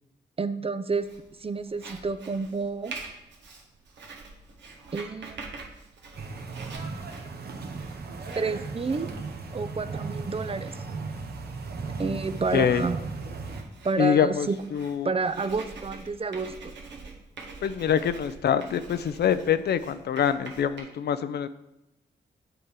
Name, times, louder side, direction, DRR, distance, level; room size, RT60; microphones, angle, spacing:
voice 1, 0.4-1.1 1.4-2.9 4.9-5.4 8.4-9.1 9.5-10.8 12.0-13.0 13.8-14.6 15.0-16.7, right 4 dB, 30° right, 12 dB, 0.5 m, -29 dB
Writing, 1.0-20.8, right 4 dB, 75° right, 1.3 m, -46 dB
sound 1, 6.1-13.6, right 4 dB, 60° right, 1.0 m, -36 dB
voice 2, 12.5-12.9 14.0-15.1 17.6-21.5, left 8 dB, 65° left, 13 dB, 0.5 m, -25 dB
7.8 x 3.6 x 4.7 m, 0.90 s
supercardioid pair, 45°, 19 cm